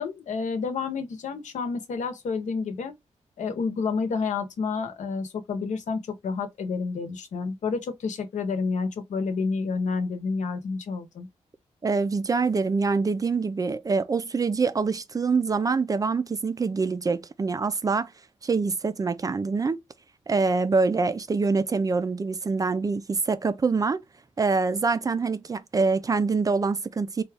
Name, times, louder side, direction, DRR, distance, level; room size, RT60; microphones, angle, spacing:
voice 1, 0.0-2.9 3.4-11.3, left 4 dB, 75° left, 0.8 m, -29 dB
voice 2, 11.8-18.1 18.4-19.8 20.3-24.0 24.4-27.2, right 4 dB, 30° right, 0.4 m, -25 dB
4.0 x 2.3 x 3.3 m
wide cardioid pair, 130°, 12 cm